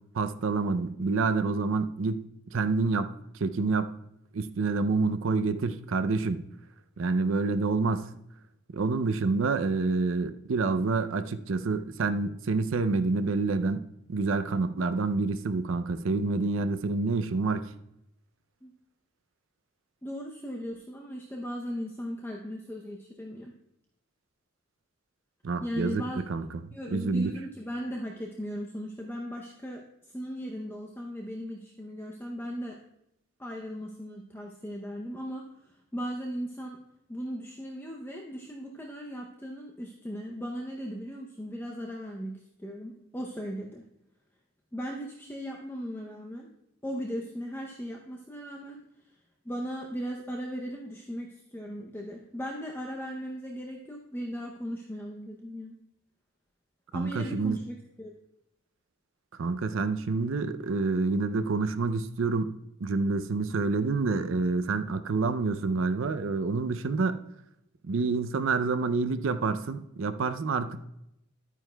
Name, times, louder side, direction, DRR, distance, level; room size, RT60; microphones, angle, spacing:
voice 1, 0.1-2.2 2.5-3.1 3.4-3.9 4.3-6.4 7.0-8.1 8.7-13.8 14.1-17.7 25.4-26.0 26.3-26.4 26.9-27.4 56.9-57.6 59.4-62.5 62.8-67.2 67.9-70.9, right 3 dB, 65° right, 10 dB, 0.5 m, -28 dB
voice 2, 20.0-23.5 25.6-26.2 26.7-29.8 30.1-32.8 33.4-36.8 37.1-43.8 44.7-46.5 46.8-48.8 49.4-55.8 56.9-58.1, equal, 10° left, -1 dB, 0.6 m, -37 dB
11.5 x 9.1 x 2.2 m, 0.82 s
head